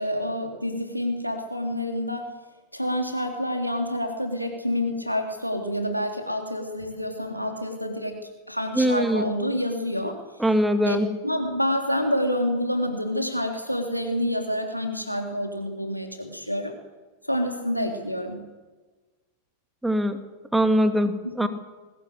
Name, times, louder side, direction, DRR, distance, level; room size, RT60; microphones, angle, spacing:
voice 1, 0.0-2.3 2.7-8.2 8.5-10.2 10.8-11.0 11.2-16.7 17.2-18.5 21.2-21.5, left 1 dB, 90° left, 3 dB, 3.4 m, -28 dB
voice 2, 8.8-9.2 10.4-11.1 19.8-20.2 20.5-21.5, equal, 5° right, 8 dB, 2.5 m, -22 dB
21.0 x 19.5 x 8.1 m, 1.3 s
figure-of-eight pair, 90°, 0 cm